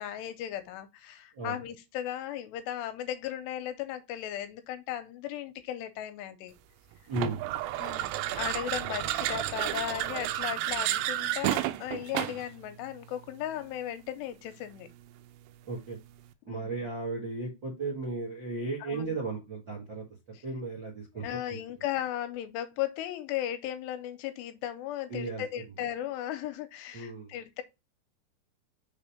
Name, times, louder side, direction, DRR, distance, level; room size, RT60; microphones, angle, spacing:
voice 1, 0.0-6.5 7.8-14.9 16.5-16.8 18.8-19.2 20.3-20.4 21.2-27.6, left 12 dB, 80° left, 2.7 m, -36 dB
voice 2, 7.1-7.4 15.6-16.0 16.4-20.0 20.4-21.3 25.1-25.4 26.9-27.3, right 3 dB, 60° right, 1.2 m, -35 dB
sound 1, 7.1-12.5, right 14 dB, 85° right, 2.8 m, -31 dB
6.3 x 3.5 x 4.3 m
omnidirectional pair, 5.1 m